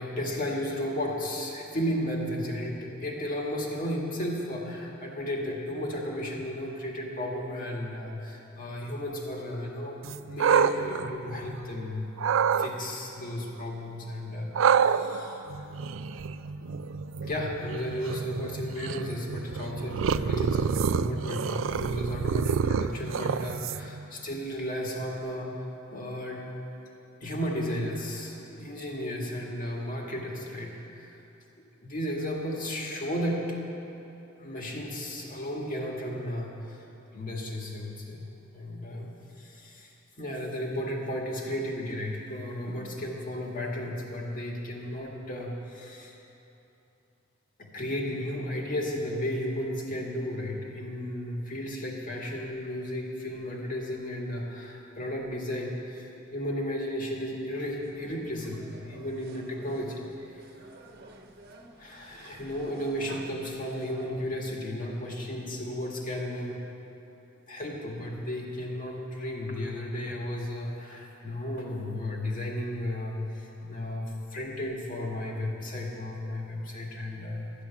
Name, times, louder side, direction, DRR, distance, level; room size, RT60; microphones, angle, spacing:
voice 1, 0.0-10.0 10.3-12.1 12.6-15.4 16.6-16.8 17.2-25.7 25.9-26.5 27.2-31.1 31.8-33.6 34.4-36.8 37.1-38.2 38.5-46.1 47.6-60.6 61.8-66.6 67.5-77.4, left 1 dB, 45° left, -1 dB, 2.0 m, -34 dB
sound 1, 10.0-11.8 12.2-12.7 14.5-24.0, right 6 dB, 75° right, 0.4 m, -28 dB
sound 2, 57.5-64.2, right 2 dB, 50° right, 1.1 m, -51 dB
13.0 x 10.5 x 7.1 m, 3.0 s
head